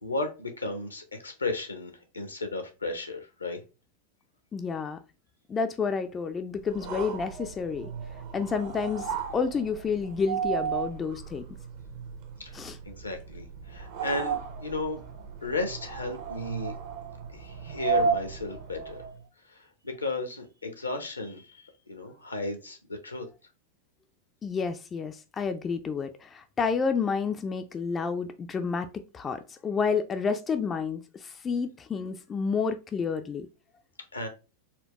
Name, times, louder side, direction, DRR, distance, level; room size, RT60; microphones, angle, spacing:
voice 1, 0.0-3.6 12.4-12.6 12.8-15.0 15.4-16.7 17.3-19.0 19.5-23.3 34.1-34.3, left 2 dB, 80° left, 0.7 m, -34 dB
voice 2, 4.5-5.0 5.5-7.9 8.3-11.5 12.5-12.8 24.4-28.9 29.1-33.5, left 5 dB, 20° left, 0.3 m, -30 dB
sound 1, 6.7-19.2, right 6 dB, 50° right, 0.7 m, -34 dB
4.3 x 2.2 x 3.0 m
figure-of-eight pair, 90°, 0 cm